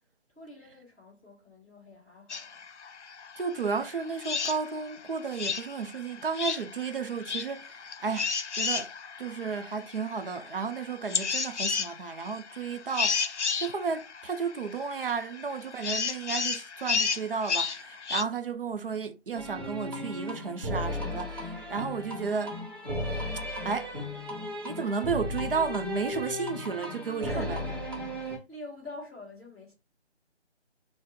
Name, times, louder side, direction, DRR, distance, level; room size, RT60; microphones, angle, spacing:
voice 1, 0.3-2.6 27.2-29.7, left 1 dB, ahead, 1.6 m, -45 dB
sound 1, 2.3-18.2, left 5 dB, 75° left, 0.6 m, -33 dB
voice 2, 3.4-8.9 9.2-22.6 23.6-23.9 24.6-27.5, right 5 dB, 55° right, 0.5 m, -33 dB
sound 2, 19.3-28.4, left 1 dB, 20° right, 0.8 m, -35 dB
4.3 x 2.1 x 3.5 m
figure-of-eight pair, 155°, 35 cm